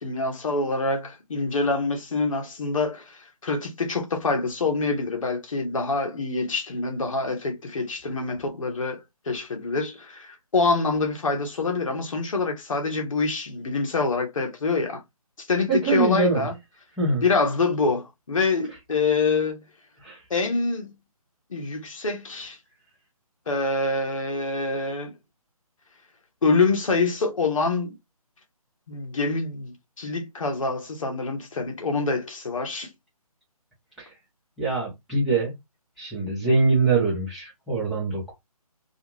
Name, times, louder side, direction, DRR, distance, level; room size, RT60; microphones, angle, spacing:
voice 1, 0.0-9.0 9.3-15.0 15.4-16.5 17.2-19.6 20.3-20.9 21.5-22.6 23.5-25.1 26.4-27.9 28.9-32.9, left 3 dB, 55° left, 1.0 m, -26 dB
voice 2, 15.7-16.5 17.0-17.2 20.0-20.2 34.0-34.1 34.6-35.5 36.0-38.3, right 3 dB, ahead, 0.9 m, -23 dB
2.5 x 2.3 x 3.1 m
figure-of-eight pair, 150°, 19 cm